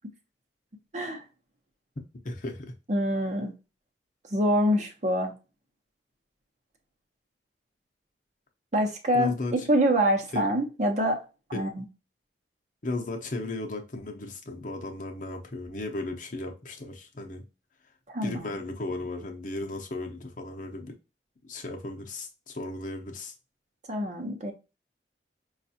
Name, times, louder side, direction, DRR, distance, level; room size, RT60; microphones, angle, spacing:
voice 1, 0.9-1.2 2.9-3.5 4.3-5.3 8.7-9.3 9.7-11.2 11.5-11.9 18.1-18.4 23.9-24.5, equal, 40° right, 0.8 m, -25 dB
voice 2, 2.2-2.7 9.1-9.5 10.3-10.5 11.5-11.6 12.8-17.4 18.2-20.9 21.4-23.3, left 2 dB, 45° left, 0.7 m, -35 dB
5.2 x 2.4 x 2.7 m
head